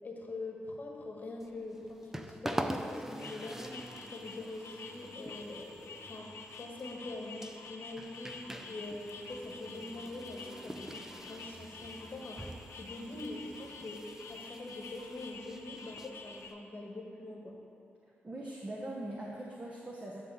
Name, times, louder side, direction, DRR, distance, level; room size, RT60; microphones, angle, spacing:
voice 1, 0.0-3.7 4.1-6.3 6.6-8.4 8.6-12.4 12.7-14.0 14.3-17.5, left 2 dB, 45° left, 0 dB, 1.2 m, -43 dB
sound 1, 1.4-16.5, right 1 dB, 10° right, 0.4 m, -45 dB
sound 2, 3.2-16.5, left 4 dB, 85° left, 0.7 m, -49 dB
voice 2, 18.2-20.2, right 1 dB, 30° right, -2 dB, 0.9 m, -41 dB
10.0 x 4.0 x 7.0 m, 2.7 s
cardioid pair, 95°, 4 cm